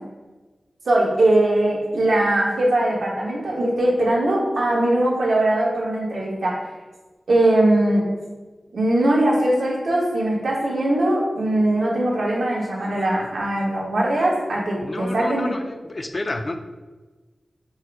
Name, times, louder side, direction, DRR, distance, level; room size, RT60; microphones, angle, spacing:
voice 1, 0.8-6.6 7.3-8.0 8.7-15.5, right 1 dB, 85° right, -4 dB, 1.1 m, -20 dB
voice 2, 14.8-16.6, left 2 dB, 40° left, 6 dB, 0.3 m, -29 dB
4.6 x 2.1 x 4.5 m, 1.2 s
wide cardioid pair, 75°, 0 cm